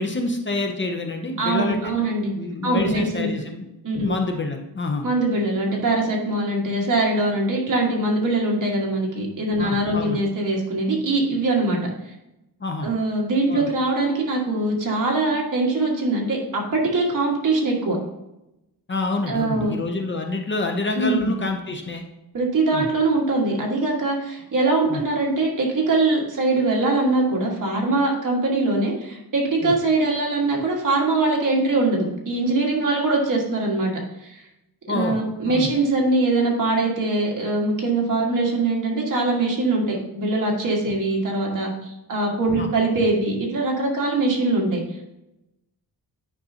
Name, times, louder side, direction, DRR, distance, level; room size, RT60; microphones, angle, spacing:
voice 1, 0.0-1.9 2.4-3.7 4.0-5.1 9.6-10.2 12.6-12.9 13.5-13.7 18.9-22.0 22.7-22.9 24.9-25.0 29.6-29.7 34.9-35.2 35.5-35.7 42.6-42.7, left 3 dB, 30° left, 3 dB, 0.6 m, -27 dB
voice 2, 1.4-2.3 2.6-3.3 3.8-4.1 5.0-11.8 12.0-12.1 12.8-18.0 19.3-19.8 21.0-21.3 22.3-33.9 34.2-34.4 34.9-44.8, right 2 dB, 55° right, -1 dB, 1.7 m, -22 dB
9.4 x 5.3 x 2.8 m, 0.90 s
wide cardioid pair, 155°, 39 cm